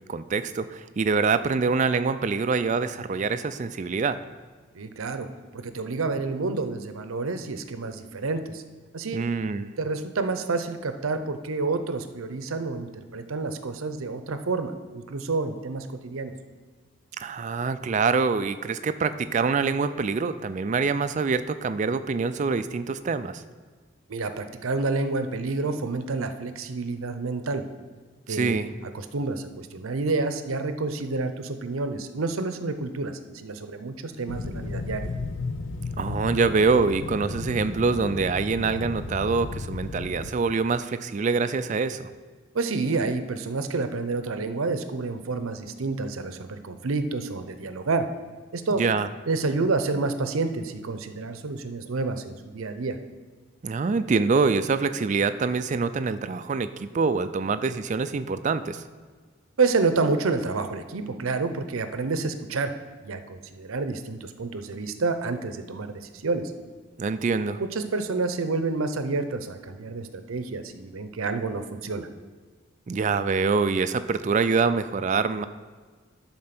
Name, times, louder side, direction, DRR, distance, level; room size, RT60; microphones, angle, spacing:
voice 1, 0.1-4.2 9.1-9.7 17.2-23.4 28.3-28.7 36.0-42.1 48.8-49.1 53.6-58.8 67.0-67.6 72.9-75.4, right 4 dB, 35° right, 11 dB, 0.3 m, -25 dB
voice 2, 4.7-5.3 5.5-8.6 8.9-9.2 9.8-16.3 24.1-27.6 28.3-28.6 28.9-35.1 42.5-48.0 48.5-48.8 49.3-53.0 59.6-62.7 63.0-66.5 67.6-72.1, right 3 dB, 85° right, 9 dB, 0.7 m, -29 dB
sound 1, 34.3-40.3, left 3 dB, 65° left, 0.6 m, -34 dB
11.0 x 4.4 x 5.9 m, 1.4 s
head